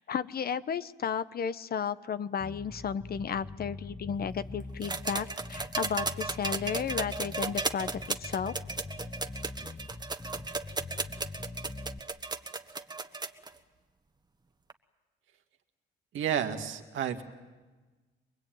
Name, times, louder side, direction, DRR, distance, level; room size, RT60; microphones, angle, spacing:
voice 1, 0.0-8.5, left 7 dB, 50° left, 14 dB, 1.0 m, -33 dB
Bass guitar, 2.4-12.0, left 3 dB, 20° left, 1.0 m, -43 dB
sound 1, 4.8-13.5 14.7-14.8, right 3 dB, 20° right, 1.4 m, -35 dB
voice 2, 16.1-17.2, right 9 dB, 75° right, 5 dB, 2.2 m, -31 dB
25.0 x 21.5 x 9.3 m, 1.2 s
cardioid pair, 90°, 20 cm